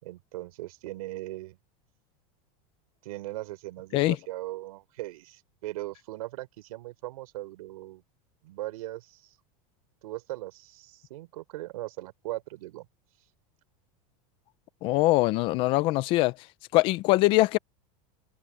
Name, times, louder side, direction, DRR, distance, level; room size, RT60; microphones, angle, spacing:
voice 1, 0.0-1.6 3.0-8.0 8.4-9.3 10.0-12.9, right 18 dB, 75° right, 4.1 m, -39 dB
voice 2, 14.8-16.3 16.7-17.6, left 19 dB, 30° left, 0.4 m, -22 dB
supercardioid pair, 180°, 19 cm